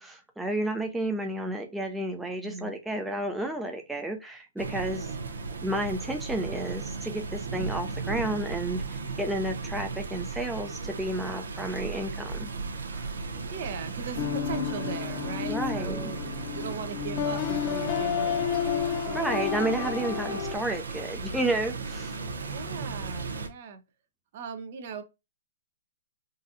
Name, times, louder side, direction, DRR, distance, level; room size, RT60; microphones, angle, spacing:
voice 1, 0.0-5.1 5.6-12.5 15.5-16.1 19.1-22.2, right 1 dB, 5° right, 0.5 m, -31 dB
voice 2, 2.4-2.7 4.9-5.2 11.5-11.8 13.5-16.3 16.5-18.4 19.0-19.9 20.4-20.6 22.5-23.8 24.3-25.0, right 5 dB, 50° right, 0.7 m, -39 dB
sound 1, 4.6-23.5, right 4 dB, 80° right, 0.8 m, -36 dB
sound 2, 14.2-20.5, left 8 dB, 35° left, 0.8 m, -31 dB
4.0 x 2.6 x 2.5 m
hypercardioid pair, 140°, 0 cm